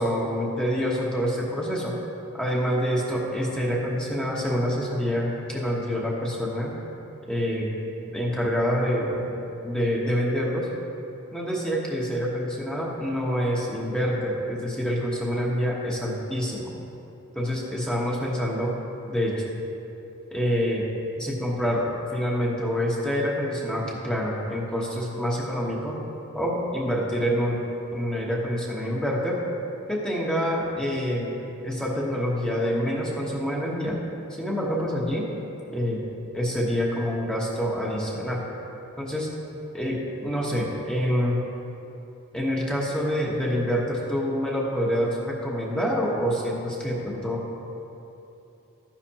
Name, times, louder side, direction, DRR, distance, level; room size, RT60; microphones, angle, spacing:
voice 1, 0.0-1.9 2.3-6.7 7.3-7.7 8.1-9.3 9.6-10.7 11.3-16.7 17.3-18.7 19.1-19.4 20.3-20.9 21.2-21.9 22.1-25.9 26.3-27.6 27.9-29.4 29.9-31.3 31.6-34.0 34.3-35.3 35.7-36.0 36.3-38.4 39.0-39.3 39.7-41.4 42.3-47.4, equal, 5° left, -4 dB, 1.1 m, -26 dB
13.0 x 10.0 x 2.9 m, 2.9 s
head